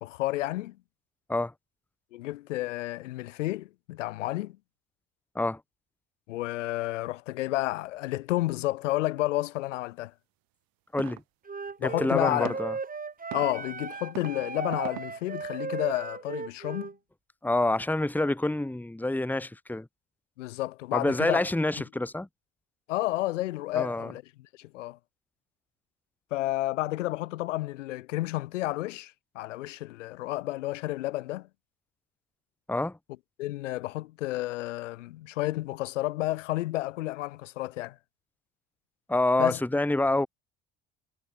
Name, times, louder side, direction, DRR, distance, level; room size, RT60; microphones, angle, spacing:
voice 1, 0.0-0.8 2.1-4.6 6.3-10.1 11.8-12.6 13.3-16.9 20.4-21.5 22.9-25.0 26.3-31.5 33.4-38.0 39.4-39.6, left 17 dB, 85° left, 2.9 m, -31 dB
sound 1, 11.0-11.2 12.3-12.5 13.3-13.5 14.1-14.3 14.7-15.0, right 21 dB, 70° right, 7.6 m, -38 dB
Wind instrument woodwind instrument, 11.5-16.9, right 4 dB, 25° right, 2.2 m, -36 dB
voice 2, 11.8-12.7 17.4-19.9 20.9-22.3 23.7-24.1 32.7-33.0 39.1-40.3, left 2 dB, 5° left, 1.4 m, -27 dB
hypercardioid pair, 65°, 36 cm